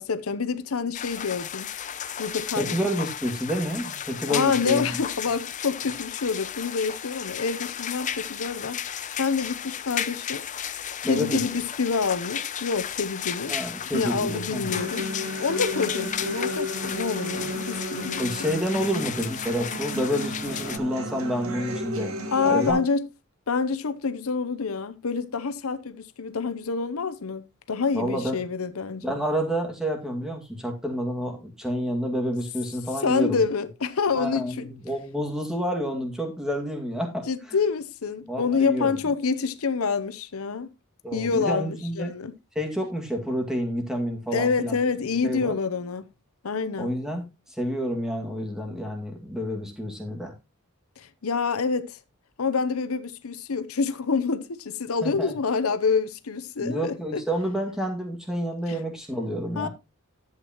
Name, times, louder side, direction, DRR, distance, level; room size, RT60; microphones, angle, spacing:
voice 1, 0.0-1.7 2.2-2.8 4.3-13.6 13.9-15.1 15.4-18.2 22.3-23.1 23.5-29.2 33.0-34.7 37.3-40.7 41.1-42.3 44.3-46.1 46.4-46.9 51.0-52.0 52.4-57.2 58.7-58.8 59.6-59.7, left 5 dB, 85° left, 0.8 m, -27 dB
sound 1, 0.9-20.8, left 9 dB, 35° left, 0.5 m, -34 dB
voice 2, 2.6-5.0 11.0-11.4 13.5-14.8 18.2-22.1 22.4-22.8 27.9-28.4 29.0-33.4 34.1-37.3 38.3-38.9 41.0-42.1 42.6-44.8 45.2-45.5 46.8-47.2 47.6-50.3 55.0-55.3 56.6-59.7, equal, 5° right, 2.1 m, -29 dB
Human voice / Acoustic guitar, 14.7-22.7, equal, 85° right, 1.9 m, -33 dB
11.0 x 8.2 x 3.0 m
head